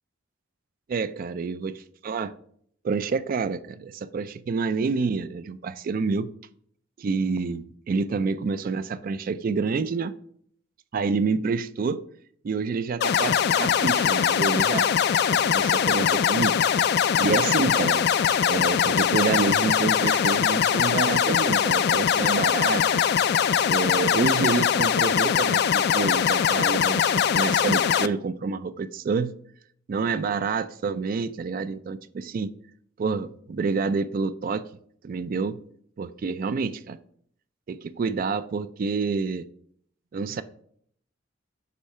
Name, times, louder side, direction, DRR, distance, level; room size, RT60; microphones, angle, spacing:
voice 1, 0.9-1.7 2.0-2.3 2.8-6.3 7.0-10.1 10.9-12.0 12.4-14.9 15.3-16.6 17.2-18.1 18.4-22.8 23.7-29.4 29.9-32.5 33.0-34.7 35.0-35.6 36.0-37.0 37.7-39.4 40.1-40.4, right 4 dB, 45° right, 0.3 m, -28 dB
sound 1, 13.0-28.1, left 8 dB, 55° left, 0.3 m, -22 dB
8.1 x 3.1 x 5.5 m
head